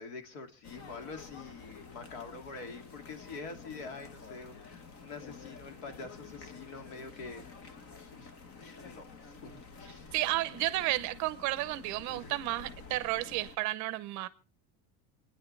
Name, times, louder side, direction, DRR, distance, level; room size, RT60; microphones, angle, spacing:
voice 1, 0.0-8.3 8.6-10.1 12.1-12.3, left 4 dB, 70° left, 2.7 m, -46 dB
sound 1, 0.6-13.6, left 4 dB, 35° left, 1.1 m, -50 dB
voice 2, 10.1-14.3, right 17 dB, 45° right, 0.7 m, -32 dB
28.5 x 9.9 x 3.3 m
cardioid pair, 180°, 41 cm